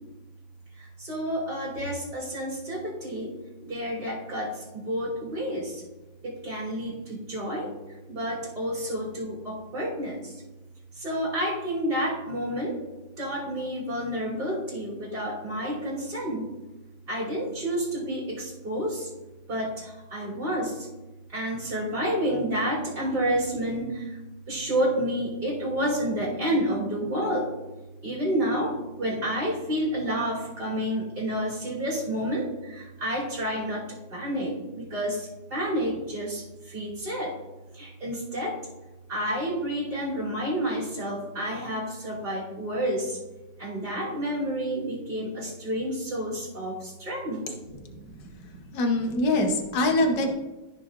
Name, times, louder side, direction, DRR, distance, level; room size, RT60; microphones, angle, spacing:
voice 1, 0.8-5.8 6.2-7.7 8.1-10.3 10.9-12.8 13.2-16.5 17.1-19.1 19.5-20.9 21.3-24.2 24.5-27.5 28.0-37.3 37.7-38.5 39.1-43.2 43.6-47.4 47.7-48.6 49.0-49.1 49.3-49.4, equal, 30° right, -7 dB, 3.3 m, -30 dB
voice 2, 48.7-50.3, left 1 dB, 75° left, 4 dB, 1.6 m, -23 dB
14.0 x 5.8 x 2.5 m, 1.1 s
omnidirectional pair, 1.9 m